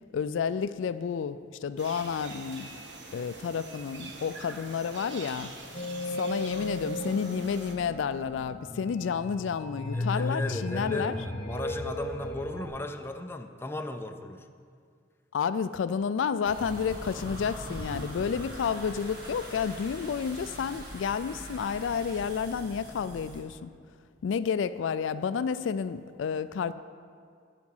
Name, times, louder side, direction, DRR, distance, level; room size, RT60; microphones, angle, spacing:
voice 1, 0.1-2.7 3.1-5.9 6.2-11.2 15.3-23.7 24.2-26.7, left 6 dB, 90° left, 13 dB, 0.3 m, -30 dB
sound 1, 1.8-7.7, right 3 dB, 70° right, 1.2 m, -45 dB
sound 2, 5.7-12.7, left 1 dB, 40° left, 1.1 m, -35 dB
voice 2, 9.9-14.5, left 2 dB, 15° left, 6 dB, 0.4 m, -36 dB
sound 3, 16.5-23.4, equal, 55° right, 1.9 m, -42 dB
10.5 x 5.0 x 7.3 m, 2.1 s
head